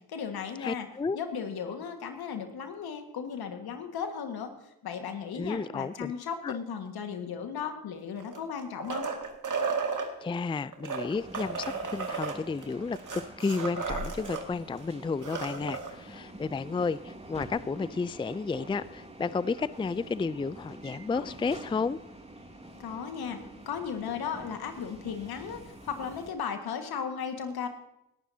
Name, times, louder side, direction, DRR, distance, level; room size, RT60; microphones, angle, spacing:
voice 1, 0.1-0.9 1.1-4.5 4.8-9.1 22.8-23.4 23.7-27.7, left 7 dB, 75° left, 6 dB, 1.8 m, -36 dB
voice 2, 0.6-1.2 5.4-6.1 6.4-6.5 10.2-22.0, left 4 dB, 15° left, 17 dB, 0.4 m, -32 dB
sound 1, 8.2-10.1 10.7-14.4 14.8-14.9 15.1-15.9 17.4-17.5, right 5 dB, 55° right, 2.2 m, -34 dB
sound 2, 11.1-26.3, right 1 dB, 15° right, 2.8 m, -47 dB
19.0 x 12.0 x 2.8 m, 0.85 s
supercardioid pair, 50°, 37 cm